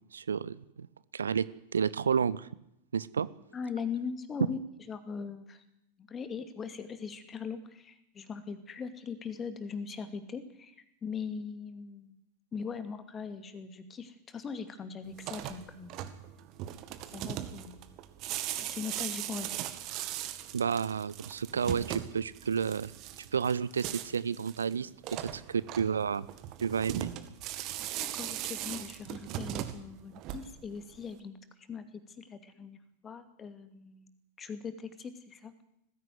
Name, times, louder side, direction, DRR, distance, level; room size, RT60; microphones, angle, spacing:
voice 1, 0.1-0.9 1.1-1.5 1.7-2.5 2.9-3.3 20.5-22.9 23.3-26.3 26.6-27.1, right 6 dB, 70° right, 18 dB, 0.7 m, -31 dB
voice 2, 3.5-4.6 4.9-5.6 6.1-10.8 11.0-12.2 12.5-16.0 17.1-17.9 18.6-19.7 28.0-32.8 33.0-34.1 34.4-35.5, left 6 dB, 20° left, 10 dB, 2.4 m, -40 dB
sound 1, 15.1-30.8, right 12 dB, 40° right, 2.0 m, -39 dB
20.0 x 15.5 x 9.5 m, 0.80 s
figure-of-eight pair, 90°, 0 cm